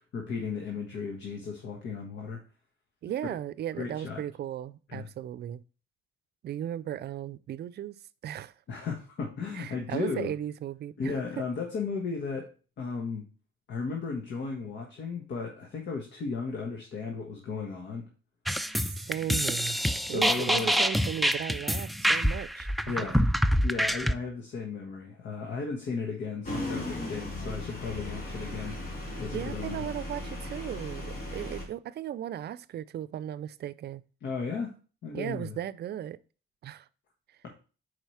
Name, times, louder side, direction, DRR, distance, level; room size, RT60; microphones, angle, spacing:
voice 1, 0.1-2.4 3.8-4.2 4.9-5.1 8.7-10.3 11.0-12.5 12.8-13.2 13.7-18.1 20.0-20.8 22.9-23.2 23.6-28.7 29.2-29.9 34.2-34.7 35.0-35.6 37.4-37.5, left 4 dB, 65° left, 1.4 m, -35 dB
voice 2, 3.0-5.6 6.4-8.0 8.2-8.5 9.5-11.4 18.8-19.8 20.1-23.0 29.3-34.0 35.1-36.2 36.6-36.9, right 11 dB, 55° right, 0.4 m, -36 dB
sound 1, 18.5-24.1, equal, ahead, 0.4 m, -26 dB
sound 2, 26.4-31.6, left 1 dB, 50° left, 2.3 m, -37 dB
4.9 x 4.6 x 5.6 m
cardioid pair, 90°, 20 cm